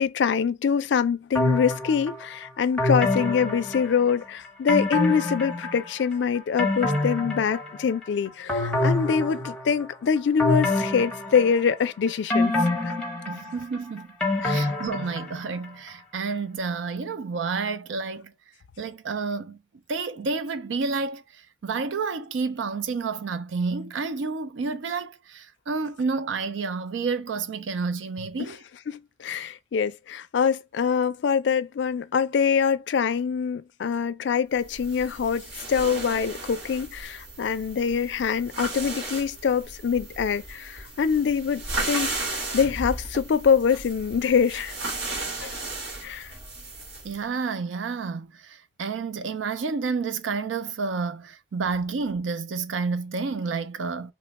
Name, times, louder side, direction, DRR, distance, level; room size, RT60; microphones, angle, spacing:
voice 1, 0.0-12.6 12.8-12.9 14.4-14.7 28.9-44.8 45.4-45.6 46.0-46.3, left 6 dB, 65° left, 0.3 m, -24 dB
sound 1, 1.4-2.2 2.8-4.2 4.7-6.0 6.4-8.0 8.5-9.8 10.4-11.8 12.3-15.6 15.9-16.0, left 2 dB, 5° left, 0.8 m, -26 dB
voice 2, 13.3-14.1 14.5-18.3 18.8-19.6 19.9-28.6 47.0-54.1, right 4 dB, 80° right, 0.4 m, -30 dB
sound 2, 34.6-47.2, right 2 dB, 60° right, 1.3 m, -35 dB
2.9 x 2.2 x 4.0 m
head